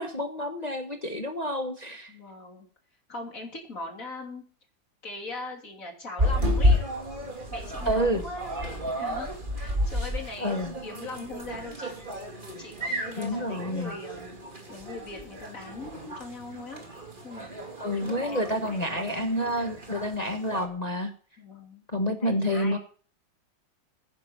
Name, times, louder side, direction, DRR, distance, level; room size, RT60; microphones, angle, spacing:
voice 1, 0.0-2.1 7.9-8.2 10.4-10.7 13.2-13.9 17.8-21.1 21.9-22.8, equal, 25° left, 5 dB, 1.1 m, -29 dB
voice 2, 2.1-2.7 3.1-4.4 5.0-6.8 7.5-8.5 9.0-10.5 10.8-11.9 12.6-14.4 14.7-16.8 17.2-17.7 18.0-18.4 18.7-19.0 21.4-22.8, left 2 dB, 45° left, 2 dB, 3.4 m, -40 dB
sound 1, 6.2-20.7, left 1 dB, 25° right, 2.4 m, -31 dB
15.5 x 9.7 x 5.9 m, 0.43 s
omnidirectional pair, 2.0 m